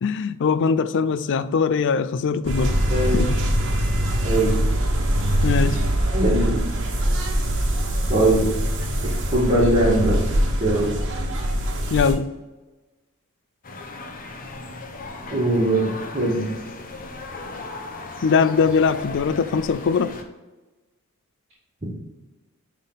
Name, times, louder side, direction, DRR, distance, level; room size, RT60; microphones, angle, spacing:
voice 1, 0.0-2.8 3.1-3.4 5.4-5.8 11.9-12.3 18.2-20.2, left 5 dB, 55° left, 0.4 m, -21 dB
sound 1, 2.4-12.1, equal, 60° right, 1.3 m, -23 dB
voice 2, 2.9-3.4 4.2-4.5 6.1-6.6 8.1-8.5 9.0-10.2 10.6-10.9 15.3-16.5, right 1 dB, 30° right, 2.0 m, -21 dB
sound 2, 13.6-20.2, left 2 dB, 40° left, 0.8 m, -37 dB
9.5 x 3.7 x 4.0 m
head